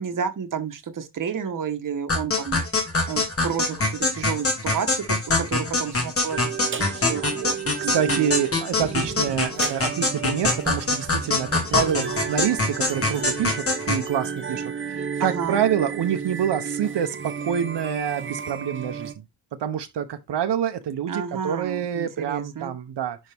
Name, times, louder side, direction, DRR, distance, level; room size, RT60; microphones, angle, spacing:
voice 1, 0.0-2.6 3.1-6.5 6.9-8.3 15.2-15.6 21.1-22.7, right 7 dB, 50° right, 1.2 m, -31 dB
sound 1, 2.1-14.1, left 2 dB, 35° left, 1.9 m, -24 dB
sound 2, 6.3-19.1, right 7 dB, 30° right, 0.7 m, -33 dB
voice 2, 7.9-19.1 19.6-23.2, right 9 dB, 85° right, 0.9 m, -27 dB
10.5 x 3.7 x 3.5 m
wide cardioid pair, 165°, 41 cm